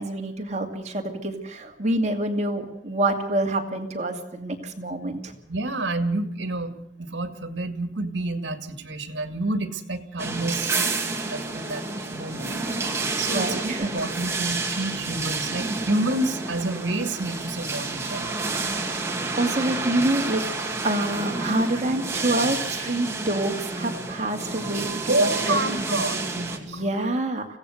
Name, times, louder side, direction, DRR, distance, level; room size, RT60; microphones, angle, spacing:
voice 1, 0.0-5.3 13.3-13.9 19.4-20.4 20.8-25.6 26.7-27.5, right 1 dB, 35° right, 3 dB, 2.4 m, -27 dB
voice 2, 5.5-10.8 11.3-12.6 12.9-18.7 25.1-26.9, right 2 dB, 65° right, 8 dB, 2.1 m, -29 dB
sound 1, 10.2-26.6, right 3 dB, 15° right, 2.3 m, -29 dB
25.0 x 16.5 x 6.5 m, 0.78 s
head